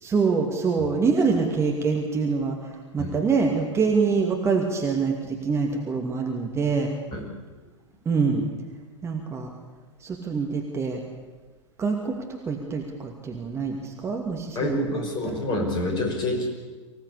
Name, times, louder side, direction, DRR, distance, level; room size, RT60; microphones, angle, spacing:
voice 1, 0.0-6.9 8.1-8.5 9.0-9.5 10.0-11.0 11.8-15.4, right 5 dB, 15° right, 1 dB, 2.5 m, -25 dB
voice 2, 14.6-16.5, left 2 dB, 30° left, 2 dB, 5.7 m, -27 dB
24.5 x 17.0 x 8.6 m, 1.3 s
figure-of-eight pair, 100°, 16 cm